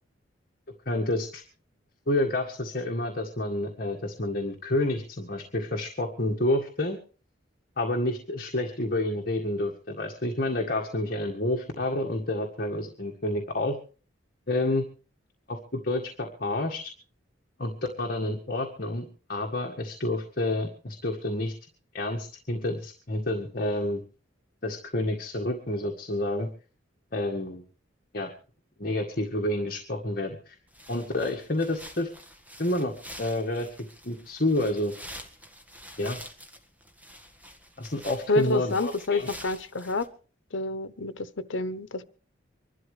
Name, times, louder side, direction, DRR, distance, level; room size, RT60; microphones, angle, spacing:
voice 1, 0.9-1.4 2.1-7.0 7.8-13.8 14.5-14.9 15.5-16.9 17.6-17.7 18.0-21.5 21.9-24.0 24.6-26.5 27.1-27.6 28.1-28.3 28.8-30.6 30.9-32.1 32.6-33.7 34.0-34.9 36.0-36.2 37.8-39.3, left 1 dB, 50° left, 1.8 m, -29 dB
sound 1, 30.7-40.1, equal, 10° right, 1.7 m, -47 dB
voice 2, 38.3-40.1 40.5-42.0, left 2 dB, 90° left, 1.0 m, -28 dB
25.0 x 12.5 x 3.3 m
head